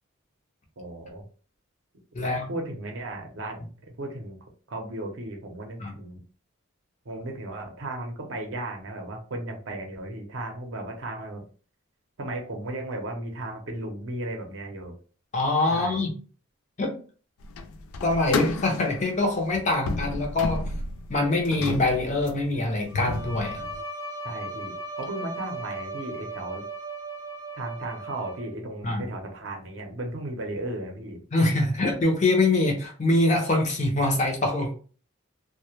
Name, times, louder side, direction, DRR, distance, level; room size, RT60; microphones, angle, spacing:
voice 1, 0.8-1.2 2.2-3.7 4.0-4.4 4.7-6.2 7.1-11.4 12.2-14.9 15.7-16.0 24.2-26.6 27.5-31.2, right 1 dB, 60° right, 2 dB, 0.6 m, -35 dB
voice 2, 2.1-2.5 5.8-5.9 15.3-16.1 16.8-17.0 18.0-20.7 21.1-23.6 28.8-29.1 31.3-34.7, left 2 dB, 35° left, 2 dB, 0.5 m, -24 dB
sound 1, 17.4-23.8, left 3 dB, 85° left, 0.3 m, -33 dB
Bowed string instrument, 22.9-28.7, right 2 dB, 15° right, 0.5 m, -37 dB
2.1 x 2.0 x 2.9 m, 0.39 s
head